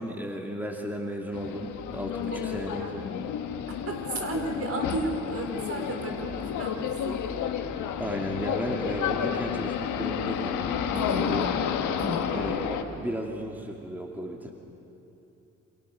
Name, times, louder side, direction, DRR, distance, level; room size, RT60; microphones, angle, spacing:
voice 1, 0.0-3.3 8.0-11.5 12.3-14.5, equal, 5° right, 1 dB, 2.5 m, -34 dB
sound 1, 1.3-12.8, left 8 dB, 85° left, 1.6 m, -31 dB
voice 2, 3.7-7.2 10.9-11.4 12.0-12.3, right 1 dB, 50° right, 3 dB, 4.6 m, -33 dB
28.0 x 27.0 x 6.5 m, 2.9 s
cardioid pair, 90°, 30 cm